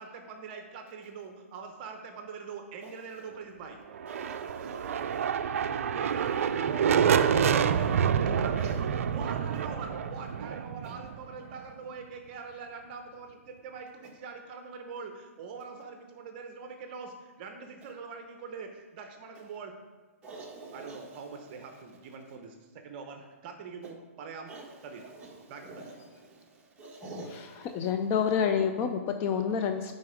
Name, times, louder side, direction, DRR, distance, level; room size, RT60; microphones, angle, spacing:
voice 1, 0.0-3.8 5.9-19.7 20.7-24.5 24.8-25.0 25.5-25.8, right 5 dB, 40° right, 0.9 m, -43 dB
sound 1, 3.9-11.7, right 7 dB, 65° right, 0.4 m, -28 dB
voice 2, 4.1-4.7 20.2-21.0 24.5-24.6 25.6-25.8 26.8-27.4, right 3 dB, 15° right, 1.5 m, -44 dB
voice 3, 27.1-29.9, left 7 dB, 25° left, 0.4 m, -29 dB
9.4 x 4.1 x 5.0 m
hypercardioid pair, 145°, 8 cm